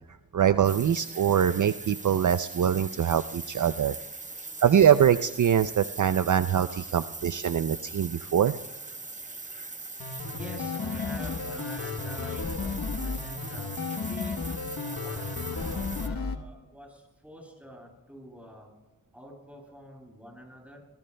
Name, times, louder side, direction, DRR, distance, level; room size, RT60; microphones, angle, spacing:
voice 1, 0.3-4.0 4.6-8.6, right 9 dB, 60° right, 11 dB, 0.5 m, -23 dB
sound 1, 0.6-16.1, right 3 dB, 20° right, 0.9 m, -41 dB
voice 2, 3.7-4.6 9.0-14.4 14.8-18.7 19.1-20.8, equal, 5° right, -1 dB, 7.3 m, -47 dB
sound 2, 10.0-16.4, left 4 dB, 90° left, 1.2 m, -33 dB
25.5 x 19.0 x 2.2 m, 1.0 s
wide cardioid pair, 70°, 35 cm